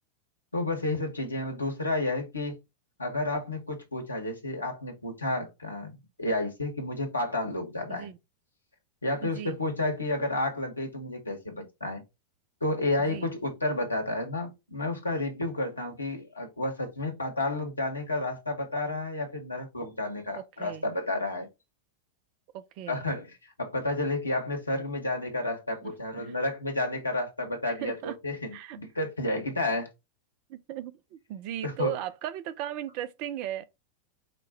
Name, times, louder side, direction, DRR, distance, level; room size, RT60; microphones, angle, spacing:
voice 1, 0.5-2.5 3.0-8.1 9.0-12.0 12.6-21.5 22.9-29.9 31.6-32.0, left 2 dB, 80° left, 1.3 m, -31 dB
voice 2, 9.2-9.6 13.0-13.3 20.3-20.8 22.5-23.0 25.8-25.9 26.2-26.4 27.7-28.2 28.5-28.8 30.5-33.7, right 11 dB, 45° right, 0.5 m, -37 dB
5.0 x 2.3 x 4.2 m
figure-of-eight pair, 90°, 0 cm